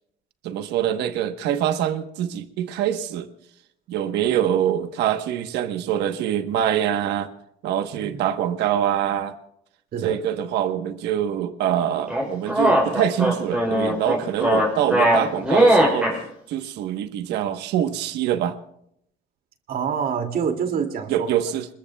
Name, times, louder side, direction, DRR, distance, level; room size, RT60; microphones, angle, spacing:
voice 1, 0.4-3.3 3.9-7.3 7.6-9.3 10.0-16.1 16.5-18.6 21.1-21.7, right 10 dB, 85° right, 8 dB, 1.2 m, -24 dB
sound 1, 12.1-16.2, equal, 5° right, 6.1 m, -19 dB
voice 2, 19.7-21.3, right 7 dB, 60° right, 5 dB, 2.5 m, -26 dB
27.5 x 22.0 x 2.3 m, 0.73 s
cardioid pair, 110°, 17 cm